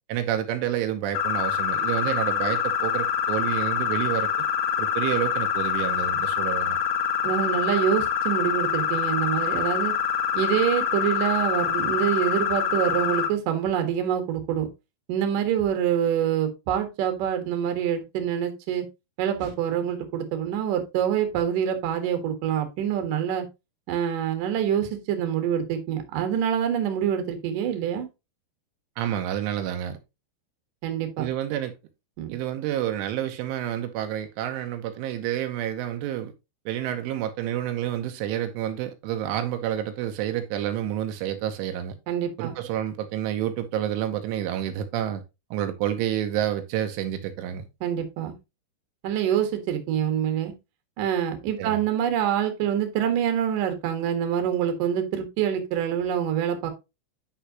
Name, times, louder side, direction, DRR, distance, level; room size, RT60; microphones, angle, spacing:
voice 1, 0.1-4.3 4.8-6.8 19.4-19.5 29.0-30.0 31.2-31.7 32.3-36.3 36.7-42.0 42.4-45.2 45.5-47.7 51.6-51.8, right 11 dB, 90° right, 3.3 m, -29 dB
sound 1, 1.1-13.3, left 8 dB, 70° left, 2.7 m, -25 dB
voice 2, 7.2-9.9 10.3-14.7 15.1-18.8 19.2-23.5 23.9-28.1 30.8-31.3 32.2-32.3 42.1-42.6 47.8-48.3 49.0-50.5 51.0-56.7, right 9 dB, 60° right, 2.6 m, -26 dB
10.0 x 5.7 x 2.9 m
omnidirectional pair, 5.4 m